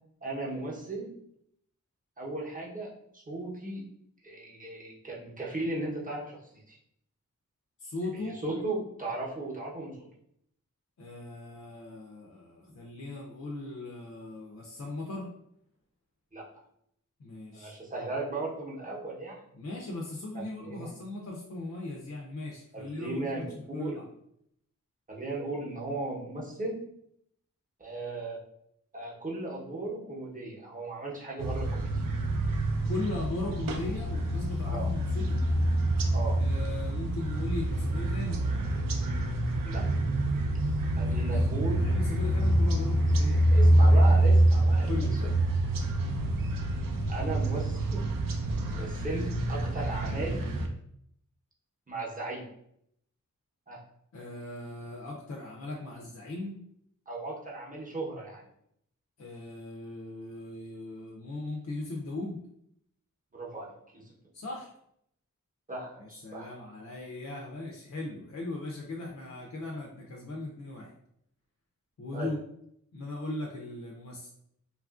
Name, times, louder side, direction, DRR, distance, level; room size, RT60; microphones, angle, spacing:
voice 1, 0.2-1.1 2.2-2.9 3.1-3.8 4.2-6.8 8.1-10.1 16.3-16.4 17.5-19.4 20.6-20.9 22.7-23.9 25.1-26.8 27.8-28.4 28.9-32.0 34.6-34.9 36.1-36.4 39.6-39.9 41.0-41.8 43.5-45.2 47.1-48.0 48.7-50.4 51.9-52.4 53.7-53.8 57.1-58.4 63.3-64.1 65.7-66.5 72.1-72.3, right 2 dB, 25° right, -4 dB, 0.8 m, -36 dB
voice 2, 7.8-8.4 11.0-15.3 17.2-17.8 19.5-23.4 23.7-24.1 32.9-35.4 36.4-38.5 40.9-41.5 41.8-43.5 43.9-44.0 44.8-45.3 54.1-56.6 59.2-62.4 64.3-64.7 66.0-70.9 72.0-72.4 72.9-74.3, left 2 dB, 55° left, -1 dB, 0.5 m, -38 dB
sound 1, 31.4-50.7, right 1 dB, 80° right, 0.5 m, -26 dB
2.9 x 2.4 x 2.4 m, 0.72 s
wide cardioid pair, 70°, 33 cm